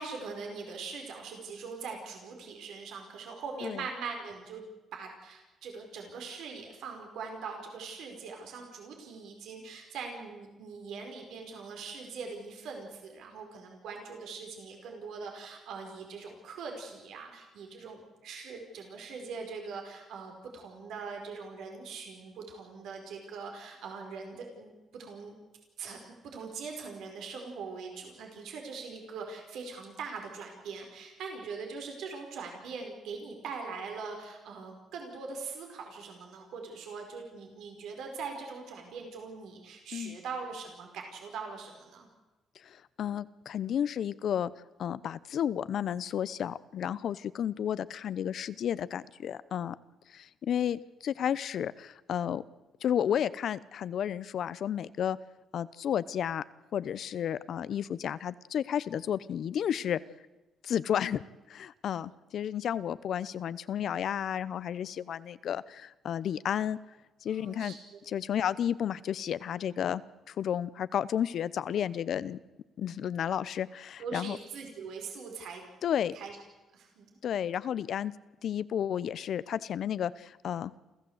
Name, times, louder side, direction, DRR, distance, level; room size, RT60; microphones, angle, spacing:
voice 1, 0.0-4.6 4.9-25.3 25.8-42.1 67.3-68.0 74.0-75.6 76.1-76.4 76.7-77.1, right 5 dB, 80° right, 3 dB, 4.8 m, -42 dB
voice 2, 42.6-44.5 44.8-49.8 50.1-52.4 52.8-55.2 55.5-56.4 56.7-60.0 60.6-61.2 61.5-66.8 67.2-67.7 68.1-70.0 70.3-72.4 72.8-74.4 75.8-76.1 77.2-78.1 78.4-80.7, left 9 dB, 65° left, 17 dB, 0.8 m, -32 dB
28.5 x 14.0 x 8.1 m, 1.1 s
cardioid pair, 90°, 0 cm